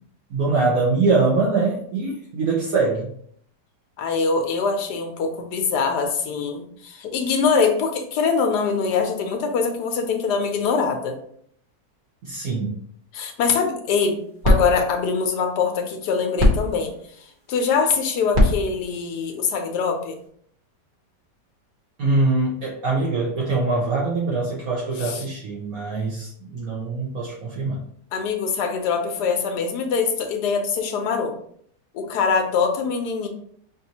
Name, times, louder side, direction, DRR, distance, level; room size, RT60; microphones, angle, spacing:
voice 1, 0.3-3.1 12.2-12.7 22.0-27.8, right 3 dB, 60° right, -5 dB, 1.2 m, -23 dB
voice 2, 4.0-11.2 13.1-14.2 14.4-16.9 17.5-20.2 25.0-25.2 28.1-31.3 31.9-33.3, left 5 dB, 75° left, 4 dB, 1.3 m, -23 dB
sound 1, 13.9-20.3, left 1 dB, 35° right, 1.0 m, -25 dB
5.4 x 2.6 x 2.9 m, 0.64 s
omnidirectional pair, 1.8 m